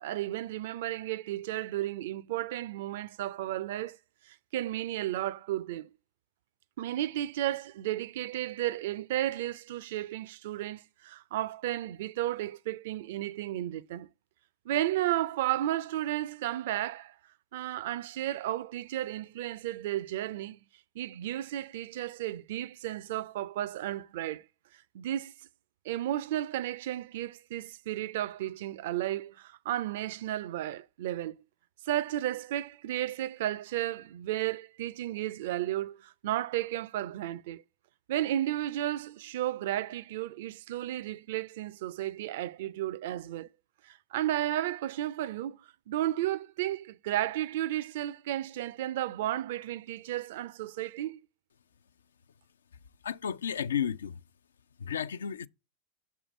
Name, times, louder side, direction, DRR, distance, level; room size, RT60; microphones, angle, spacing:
voice 1, 0.0-4.0 4.3-5.9 6.8-14.1 14.7-17.1 17.5-20.6 21.0-24.4 24.9-25.3 25.9-31.4 31.9-37.6 38.1-43.5 43.8-45.6 45.9-51.2, right 13 dB, 55° right, 0.4 m, -33 dB
voice 2, 53.0-54.2 54.8-55.5, left 8 dB, 65° left, 0.3 m, -32 dB
6.9 x 3.6 x 5.0 m
figure-of-eight pair, 90°, 0 cm